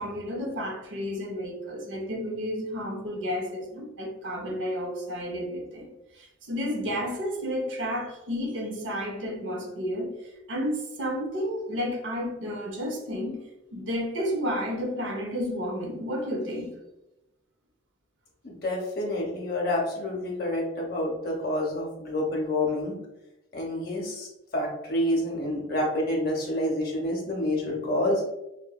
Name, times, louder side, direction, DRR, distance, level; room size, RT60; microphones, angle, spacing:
voice 1, 0.0-13.4 13.7-16.7, equal, 65° right, 2 dB, 0.6 m, -31 dB
voice 2, 18.4-23.0 23.5-24.3 24.5-28.2, left 1 dB, 50° left, -2 dB, 0.6 m, -28 dB
3.7 x 2.2 x 2.3 m, 0.93 s
head